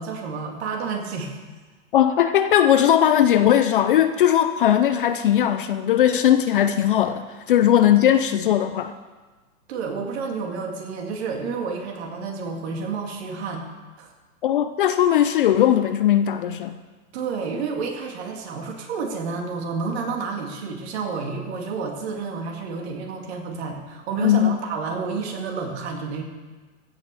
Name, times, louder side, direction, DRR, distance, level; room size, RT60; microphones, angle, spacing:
voice 1, 0.0-1.4 9.7-13.7 14.0-14.1 17.1-26.2, right 5 dB, 50° right, 2 dB, 2.3 m, -30 dB
voice 2, 1.9-8.9 14.4-16.8 24.2-24.6, left 10 dB, 40° left, 10 dB, 0.5 m, -19 dB
15.5 x 6.0 x 6.8 m, 1.3 s
hypercardioid pair, 150°, 42 cm